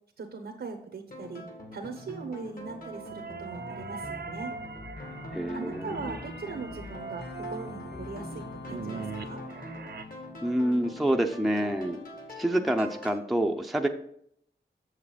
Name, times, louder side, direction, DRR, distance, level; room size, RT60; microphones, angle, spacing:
voice 1, 0.2-1.4 1.7-4.5 5.5-9.4, right 4 dB, 80° right, 4 dB, 1.0 m, -40 dB
sound 1, 1.1-13.1, left 1 dB, 50° left, 2.0 m, -44 dB
sound 2, 2.6-10.0, right 5 dB, 65° right, 0.6 m, -42 dB
sound 3, 5.0-11.1, left 3 dB, 70° left, 0.9 m, -45 dB
voice 2, 5.3-6.1 10.4-12.0 12.4-13.9, right 1 dB, ahead, 3 dB, 0.6 m, -27 dB
7.4 x 7.0 x 5.0 m, 0.69 s
wide cardioid pair, 115°, 18 cm